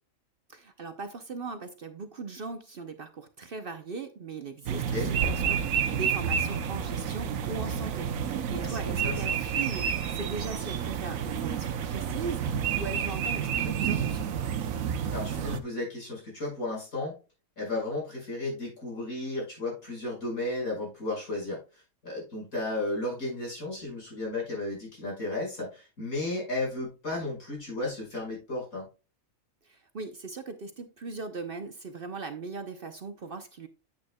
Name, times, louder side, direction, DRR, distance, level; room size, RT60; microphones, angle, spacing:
voice 1, 0.5-14.3 29.6-33.7, right 4 dB, 50° right, 0.8 m, -39 dB
voice 2, 4.7-5.1 8.6-9.2 15.1-17.1 17.6-28.9, left 2 dB, 75° left, 5.9 m, -34 dB
sound 1, 4.7-15.6, right 7 dB, 75° right, 1.2 m, -30 dB
8.9 x 8.8 x 2.2 m
omnidirectional pair, 1.5 m